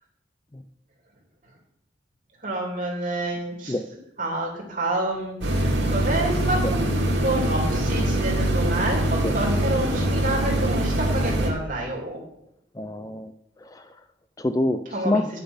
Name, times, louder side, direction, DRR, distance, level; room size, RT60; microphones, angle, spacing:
voice 1, 2.4-3.7 4.2-5.4 5.9-6.9 7.2-12.2 14.9-15.2, right 1 dB, 45° right, -1 dB, 3.1 m, -28 dB
sound 1, 5.4-11.5, right 1 dB, 85° right, 2.3 m, -23 dB
voice 2, 12.7-13.3 13.6-13.9 14.4-15.2, left 2 dB, 20° left, 9 dB, 0.4 m, -26 dB
10.0 x 6.6 x 5.6 m, 0.80 s
head